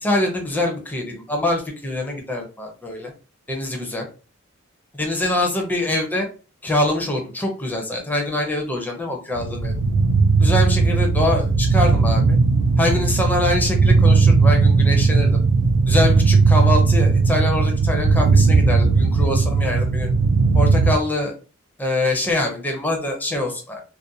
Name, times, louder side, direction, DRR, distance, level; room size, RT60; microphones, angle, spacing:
voice 1, 0.0-3.1 3.5-4.1 4.9-6.3 6.6-9.7 10.4-12.4 12.8-15.4 15.9-20.1 20.5-21.3 21.8-23.8, left 1 dB, 10° left, 1 dB, 0.5 m, -24 dB
sound 1, 9.4-20.9, right 4 dB, 80° right, 0.3 m, -17 dB
2.4 x 2.1 x 2.6 m, 0.35 s
head